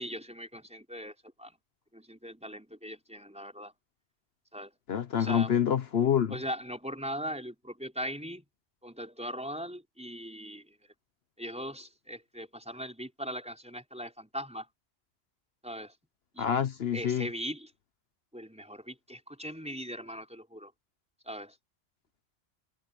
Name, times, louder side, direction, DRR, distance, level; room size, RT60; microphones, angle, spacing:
voice 1, 0.0-1.6 1.9-3.7 4.5-4.7 5.2-5.5 6.3-8.4 8.8-10.9 11.4-14.7 15.6-15.9 16.3-16.5 16.9-17.7 18.3-20.7 21.2-21.6, equal, 5° right, 4.7 m, -40 dB
voice 2, 4.9-6.4 16.4-17.3, left 8 dB, 70° left, 1.1 m, -27 dB
omnidirectional pair, 1.1 m